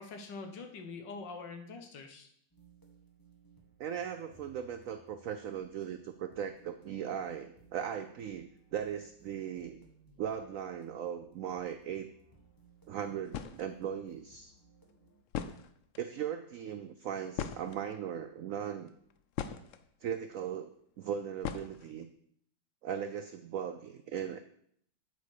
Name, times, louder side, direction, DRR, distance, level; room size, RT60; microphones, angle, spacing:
voice 1, 0.0-2.3, left 4 dB, 70° left, 5 dB, 1.8 m, -44 dB
sound 1, 2.5-15.2, right 3 dB, 10° left, 1.3 m, -62 dB
voice 2, 3.8-9.8 10.2-12.1 12.9-14.5 16.0-18.9 20.0-20.7 21.0-22.1 22.8-24.4, right 8 dB, 80° right, 9 dB, 0.7 m, -38 dB
sound 2, 13.0-13.1 13.3-13.7 14.9-15.0 15.3-16.1 17.4-18.2 18.9-19.8 21.4-22.0, left 8 dB, 90° left, 0.6 m, -39 dB
8.3 x 8.0 x 4.8 m, 0.66 s
omnidirectional pair, 2.0 m